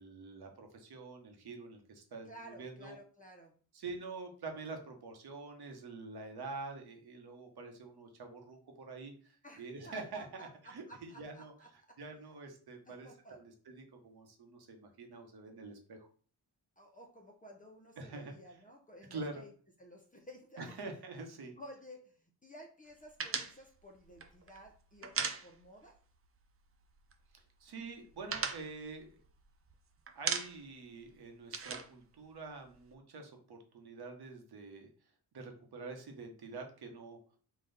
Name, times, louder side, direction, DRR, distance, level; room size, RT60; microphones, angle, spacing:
voice 1, 0.0-3.0 3.7-11.5 12.0-16.1 18.0-18.3 19.1-19.4 20.6-21.5 27.3-29.2 30.1-34.9 35.3-37.2, right 3 dB, 60° right, 3 dB, 1.1 m, -46 dB
voice 2, 2.2-3.5 9.4-12.0 12.9-13.4 16.8-19.5 19.8-20.7 21.6-26.0, equal, 20° left, 1 dB, 0.7 m, -54 dB
sound 1, 23.2-26.0 26.2-26.4 26.7-27.4 27.7-29.7 30.1-30.8 31.1-32.9, right 5 dB, 30° right, 0.6 m, -38 dB
4.0 x 2.4 x 4.0 m, 0.43 s
cardioid pair, 70°, 43 cm